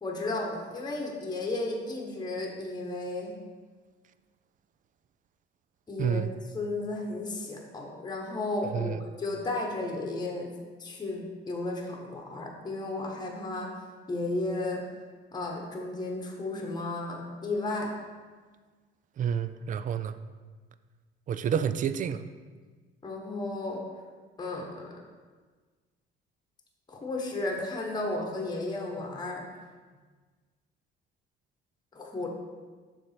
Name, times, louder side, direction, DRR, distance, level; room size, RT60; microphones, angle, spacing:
voice 1, 0.0-3.3 5.9-6.2 6.5-10.5 10.8-13.7 14.1-14.8 15.3-17.9 23.0-23.8 24.4-25.0 26.9-29.4 31.9-32.3, left 2 dB, 20° left, 0 dB, 1.1 m, -33 dB
voice 2, 6.0-6.3 8.7-9.0 19.2-20.2 21.3-22.2, right 8 dB, 40° right, 12 dB, 0.4 m, -29 dB
6.8 x 3.3 x 5.8 m, 1.4 s
cardioid pair, 110°, 20 cm